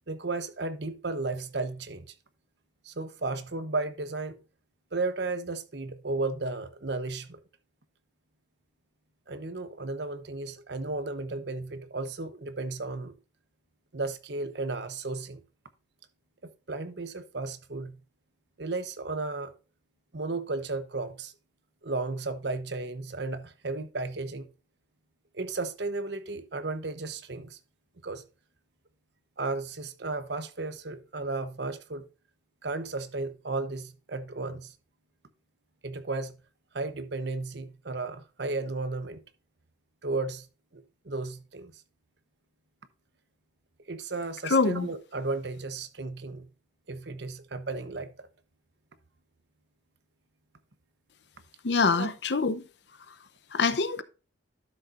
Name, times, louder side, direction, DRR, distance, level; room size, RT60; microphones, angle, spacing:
voice 1, 0.1-2.1 2.8-4.4 4.9-7.4 9.3-13.1 13.9-15.4 16.7-18.0 18.6-19.5 20.1-21.3 21.8-24.5 25.3-27.6 28.0-28.2 29.4-32.1 32.6-34.7 35.8-36.4 36.7-39.2 40.0-40.5 40.7-41.8 43.9-46.5 46.9-48.3 51.9-52.1, right 3 dB, 65° right, 0.9 m, -34 dB
voice 2, 44.5-44.9 51.6-52.6 53.5-54.0, left 4 dB, 65° left, 0.7 m, -25 dB
12.0 x 6.7 x 2.5 m
head